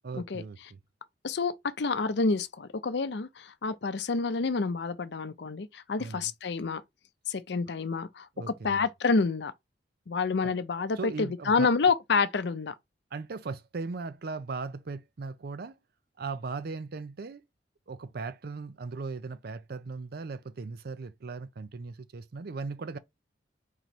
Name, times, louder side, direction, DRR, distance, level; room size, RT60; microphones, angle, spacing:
voice 1, 0.0-0.8 6.0-6.3 8.4-8.8 10.4-10.5 11.0-11.7 13.1-15.8 16.2-17.4 17.9-23.0, right 4 dB, 60° right, 0.5 m, -38 dB
voice 2, 1.2-6.8 7.3-9.5 10.1-12.7, left 4 dB, 65° left, 0.6 m, -28 dB
3.8 x 3.0 x 4.3 m
head